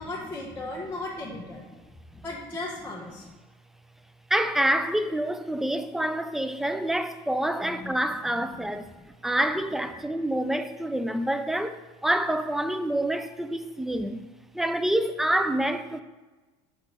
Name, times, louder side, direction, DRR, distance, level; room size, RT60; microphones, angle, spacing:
voice 1, 0.0-1.6 2.2-3.2 7.6-7.9 8.3-8.8 9.4-10.0, left 2 dB, 15° left, 1.2 m, -37 dB
voice 2, 4.3-14.2 14.5-16.0, right 1 dB, ahead, 0.4 m, -27 dB
5.2 x 5.0 x 4.4 m
supercardioid pair, 100°, 14 cm